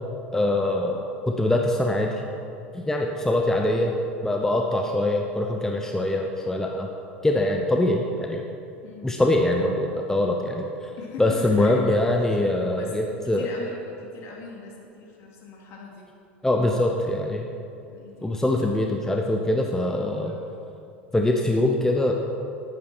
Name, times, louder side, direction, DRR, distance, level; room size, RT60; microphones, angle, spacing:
voice 1, 0.3-2.2 2.7-3.9 4.2-6.9 7.2-8.5 9.0-10.7 11.2-13.5 16.4-17.4 18.2-20.4 21.1-22.1, left 1 dB, 5° left, 2 dB, 0.9 m, -23 dB
voice 2, 11.0-16.1 17.9-18.4 20.2-20.6, left 3 dB, 45° left, -1 dB, 2.6 m, -41 dB
10.5 x 9.4 x 6.2 m, 2.6 s
figure-of-eight pair, 80°, 6 cm